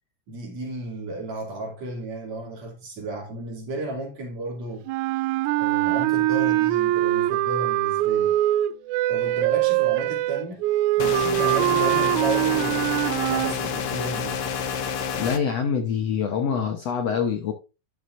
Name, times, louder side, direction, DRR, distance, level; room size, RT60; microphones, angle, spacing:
voice 1, 0.3-4.9 5.6-8.4 9.1-10.7 11.0-12.9 13.3-14.4, right 2 dB, 55° right, 3.7 m, -33 dB
sound 1, 4.9-13.6, right 15 dB, 85° right, 1.7 m, -23 dB
sound 2, 11.0-15.4, left 7 dB, 85° left, 1.2 m, -28 dB
voice 2, 15.2-17.5, left 7 dB, 65° left, 1.7 m, -25 dB
11.0 x 7.3 x 2.6 m
omnidirectional pair, 3.9 m